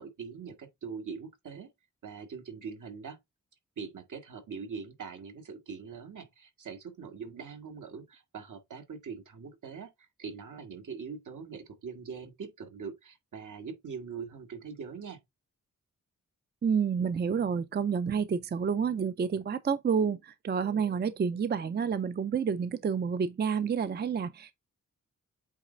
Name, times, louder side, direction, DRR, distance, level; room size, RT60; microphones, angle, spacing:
voice 1, 0.0-1.7 2.0-3.2 3.8-15.2, right 5 dB, 75° right, 1.7 m, -42 dB
voice 2, 16.6-24.5, right 6 dB, 35° right, 0.4 m, -29 dB
8.2 x 3.2 x 3.8 m
wide cardioid pair, 135°, 31 cm